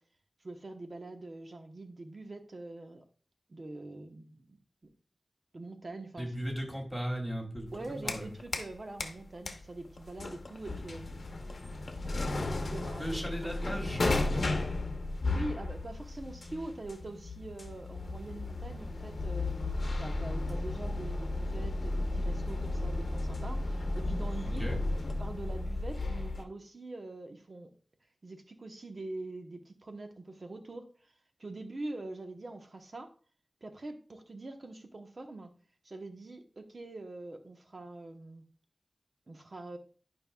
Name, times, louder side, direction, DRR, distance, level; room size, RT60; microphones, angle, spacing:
voice 1, 0.4-3.0 3.5-4.6 5.5-6.3 7.7-11.1 12.4-13.7 15.3-19.5 20.0-24.8 25.2-27.7 28.2-30.9 31.4-33.1 33.6-35.5 35.8-38.4 39.3-39.8, right 2 dB, 55° right, 5 dB, 1.0 m, -44 dB
voice 2, 6.2-8.3 13.0-14.1 24.6-24.8, equal, 5° right, 0 dB, 2.7 m, -36 dB
sound 1, 7.7-8.7 9.0-26.4, left 2 dB, 70° left, 0.8 m, -34 dB
11.5 x 5.4 x 2.3 m, 0.40 s
wide cardioid pair, 75°, 0 cm